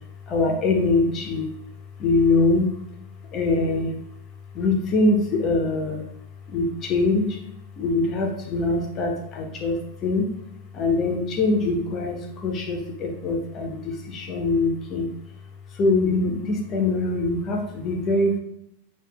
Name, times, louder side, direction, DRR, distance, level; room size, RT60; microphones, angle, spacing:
voice 1, 0.3-1.5 2.0-2.7 3.3-3.9 4.5-6.0 6.5-7.4 7.8-10.3 10.7-15.1 15.7-18.4, left 3 dB, 30° left, 2 dB, 0.8 m, -23 dB
6.6 x 2.5 x 2.3 m, 0.77 s
figure-of-eight pair, 90°, 0 cm